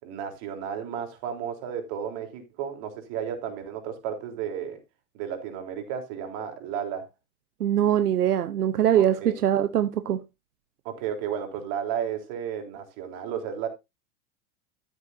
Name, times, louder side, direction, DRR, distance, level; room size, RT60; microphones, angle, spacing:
voice 1, 0.0-4.8 5.1-7.1 9.0-9.4 10.9-13.7, right 8 dB, 50° right, 3.6 m, -33 dB
voice 2, 7.6-10.2, right 10 dB, 85° right, 0.9 m, -22 dB
13.5 x 8.2 x 2.7 m
hypercardioid pair, 100°, 45 cm